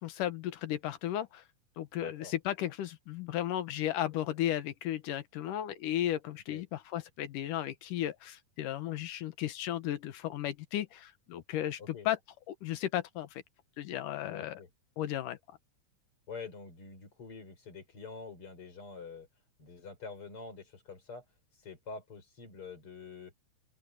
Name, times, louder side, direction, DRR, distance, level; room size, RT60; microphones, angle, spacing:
voice 1, 0.0-1.4 1.8-12.2 12.5-13.4 13.8-14.6 15.0-15.4, left 12 dB, 75° left, 2.6 m, -35 dB
voice 2, 1.9-2.3 6.5-6.6 11.8-12.1 14.3-14.7 16.3-19.3 19.6-21.2 21.6-23.3, left 4 dB, 40° left, 6.0 m, -46 dB
open air
omnidirectional pair, 4.0 m